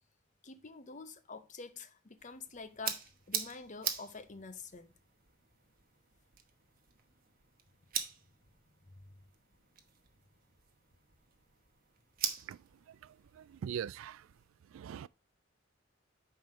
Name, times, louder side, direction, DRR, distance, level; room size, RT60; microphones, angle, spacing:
voice 1, 0.4-4.9 8.9-9.1, left 4 dB, 40° left, 0.7 m, -47 dB
sound 1, 2.2-14.5, right 9 dB, 50° right, 1.1 m, -44 dB
voice 2, 12.4-14.3 14.7-15.1, right 8 dB, 85° right, 0.3 m, -43 dB
5.5 x 4.5 x 6.3 m
head